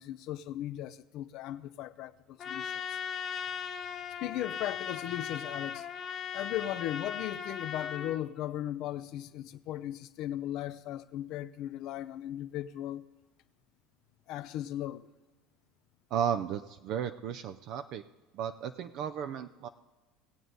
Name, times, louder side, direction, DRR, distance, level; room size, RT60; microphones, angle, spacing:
voice 1, 0.0-3.0 4.2-13.0 14.3-15.1, left 13 dB, 60° left, 0.5 m, -37 dB
Trumpet, 2.4-8.2, left 7 dB, 40° left, 1.0 m, -38 dB
voice 2, 16.1-18.0 18.3-19.7, right 8 dB, 60° right, 0.5 m, -34 dB
19.0 x 7.9 x 3.9 m
supercardioid pair, 95°, 0 cm